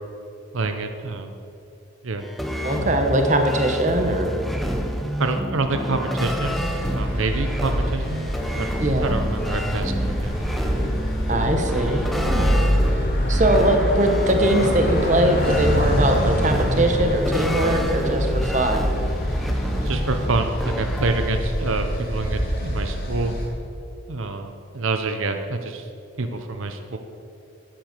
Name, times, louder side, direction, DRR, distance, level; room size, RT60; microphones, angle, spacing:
voice 1, 0.5-1.3 2.0-2.2 5.2-8.7 9.0-10.4 19.8-23.3 24.1-25.9 26.2-27.0, right 3 dB, 80° right, 6 dB, 0.8 m, -27 dB
sound 1, 2.2-21.3, equal, ahead, 0.7 m, -28 dB
voice 2, 2.6-4.3 8.8-9.2 11.3-12.7 13.3-18.9, right 1 dB, 35° right, 4 dB, 1.1 m, -21 dB
sound 2, 6.2-23.5, equal, 45° left, 2.3 m, -26 dB
10.0 x 9.3 x 6.7 m, 2.7 s
head